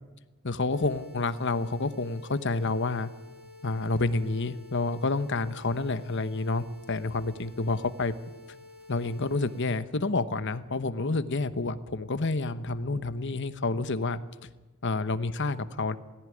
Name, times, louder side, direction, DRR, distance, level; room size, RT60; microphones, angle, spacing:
voice 1, 0.4-3.1 3.6-8.1 8.9-14.2 14.8-16.0, left 3 dB, 55° left, 12 dB, 1.0 m, -29 dB
sound 1, 0.7-9.7, left 3 dB, 80° right, 6.0 m, -51 dB
18.0 x 16.0 x 9.8 m, 1.1 s
head